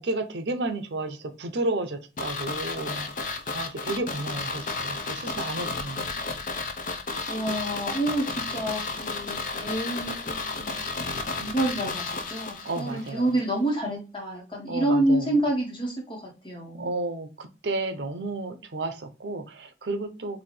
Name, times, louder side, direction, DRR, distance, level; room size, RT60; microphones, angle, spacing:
voice 1, 0.0-6.2 12.6-13.3 14.7-15.3 16.7-20.4, right 2 dB, 85° right, 8 dB, 0.7 m, -32 dB
sound 1, 2.2-13.1 13.4-13.5, left 3 dB, 45° left, 0.5 m, -33 dB
voice 2, 7.3-10.8 11.4-17.0, right 1 dB, 25° left, -1 dB, 1.3 m, -28 dB
4.0 x 2.6 x 3.1 m, 0.31 s
head